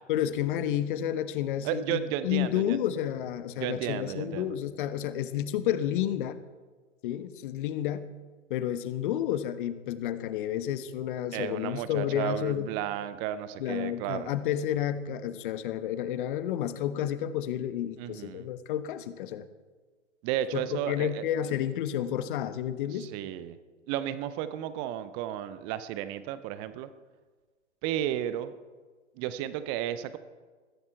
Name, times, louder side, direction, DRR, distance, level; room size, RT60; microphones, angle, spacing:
voice 1, 0.1-6.4 7.0-8.1 8.5-12.7 13.6-19.5 20.5-23.1, left 11 dB, 45° left, 12 dB, 1.2 m, -31 dB
voice 2, 1.6-2.8 3.6-4.5 11.3-14.3 18.0-18.5 20.2-21.5 23.0-23.6 23.9-26.9 27.8-28.5 29.2-30.2, right 11 dB, 15° right, 13 dB, 0.4 m, -33 dB
21.0 x 15.0 x 4.5 m, 1.4 s
figure-of-eight pair, 110°, 37 cm